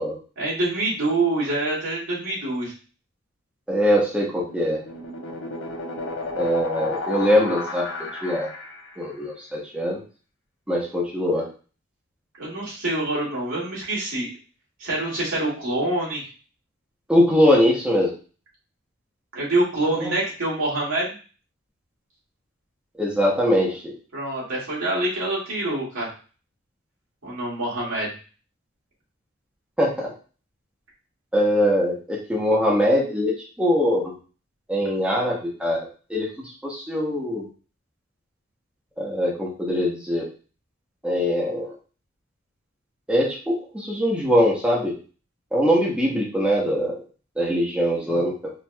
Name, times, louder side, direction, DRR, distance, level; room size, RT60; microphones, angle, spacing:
voice 1, 0.4-2.7 12.4-14.3 14.8-16.2 19.3-21.2 24.1-26.1 27.2-28.1, right 2 dB, 80° right, -5 dB, 2.0 m, -26 dB
voice 2, 3.7-4.8 6.4-8.5 9.0-10.0 10.7-11.5 17.1-18.1 19.9-20.2 23.0-23.9 29.8-30.1 31.3-34.1 34.7-36.3 36.6-37.5 39.0-40.3 41.0-41.7 43.1-45.0 45.5-47.0 47.4-48.5, equal, 5° right, -4 dB, 0.8 m, -22 dB
sound 1, 4.3-9.0, left 3 dB, 65° left, 0.8 m, -32 dB
4.4 x 2.9 x 2.2 m, 0.36 s
head